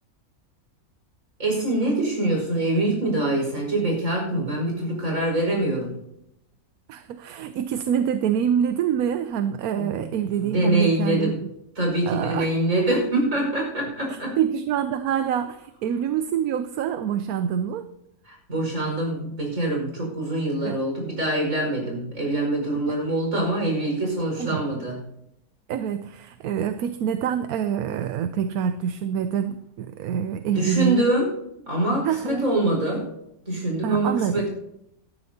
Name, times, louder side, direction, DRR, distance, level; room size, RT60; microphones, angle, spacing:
voice 1, 1.4-5.9 9.8-10.0 10.4-11.3 11.8-14.4 18.3-25.0 30.5-31.3 31.7-33.0 33.5-34.5, right 1 dB, 60° right, 0 dB, 5.7 m, -24 dB
voice 2, 6.9-11.5 12.1-12.6 14.1-17.9 20.6-20.8 22.9-23.0 24.4-24.7 25.7-31.1 32.0-32.5 33.8-34.4, right 8 dB, 80° right, 10 dB, 1.1 m, -26 dB
18.5 x 13.0 x 2.8 m, 0.81 s
omnidirectional pair, 1.6 m